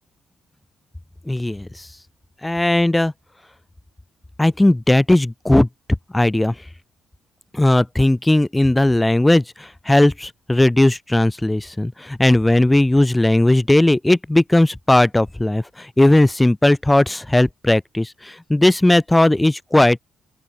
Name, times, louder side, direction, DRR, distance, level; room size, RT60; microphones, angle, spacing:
voice 1, 1.3-1.9 2.4-3.1 4.4-5.7 6.1-6.6 7.5-20.0, left 1 dB, 10° left, 0.4 m, -17 dB
open air
cardioid pair, 90°, 0 cm